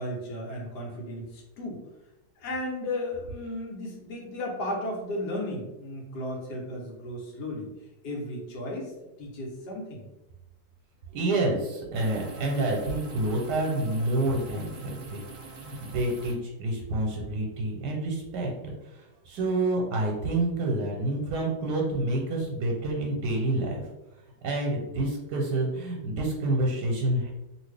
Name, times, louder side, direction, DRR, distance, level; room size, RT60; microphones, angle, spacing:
voice 1, 0.0-1.8 2.4-7.7 8.0-8.9 9.2-10.1, left 1 dB, 75° left, -2 dB, 1.4 m, -34 dB
voice 2, 11.1-15.2 15.6-23.8 24.4-27.3, right 2 dB, 90° right, -1 dB, 1.2 m, -28 dB
sound 1, 11.9-16.3, right 4 dB, 70° right, 0.4 m, -45 dB
2.8 x 2.7 x 3.3 m, 0.99 s
omnidirectional pair, 1.8 m